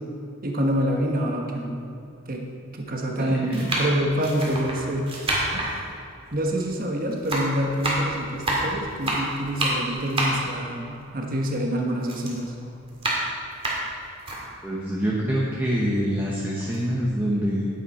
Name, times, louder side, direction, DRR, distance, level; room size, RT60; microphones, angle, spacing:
voice 1, 0.4-1.8 2.3-2.4 2.7-5.1 5.5-5.9 6.3-12.5, equal, 40° right, 1 dB, 1.3 m, -26 dB
sound 1, 0.7-0.8 1.7-1.8 2.7-3.0 3.5-6.9 7.1-11.7 12.0-14.4 14.9-15.0 15.3-16.3 16.6-16.8, right 1 dB, 25° right, 2.0 m, -29 dB
voice 2, 14.6-17.7, equal, 10° right, -4 dB, 1.0 m, -25 dB
10.0 x 9.8 x 4.3 m, 2.7 s
head